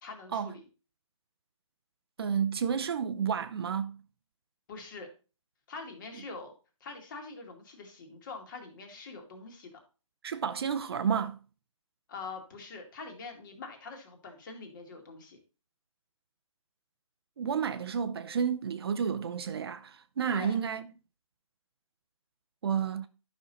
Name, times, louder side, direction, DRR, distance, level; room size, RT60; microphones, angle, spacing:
voice 1, 0.0-0.6 4.7-5.1 5.7-6.5 6.8-9.8 12.1-15.4 20.3-20.6, left 4 dB, 35° left, 2.2 m, -44 dB
voice 2, 2.2-3.9 10.2-11.4 17.4-20.9 22.6-23.1, right 7 dB, 45° right, 0.6 m, -31 dB
11.5 x 5.6 x 4.1 m
hypercardioid pair, 160°, 18 cm